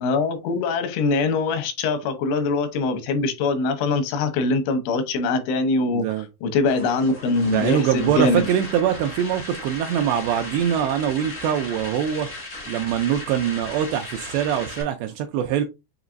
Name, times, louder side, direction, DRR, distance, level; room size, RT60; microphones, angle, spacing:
voice 1, 0.0-6.1 6.4-8.4, left 3 dB, 85° left, 3.3 m, -23 dB
voice 2, 5.9-6.3 7.5-12.3 12.7-15.6, right 9 dB, 85° right, 2.5 m, -23 dB
sound 1, 6.7-14.8, left 2 dB, 60° left, 0.7 m, -37 dB
7.2 x 2.9 x 2.5 m
omnidirectional pair, 5.3 m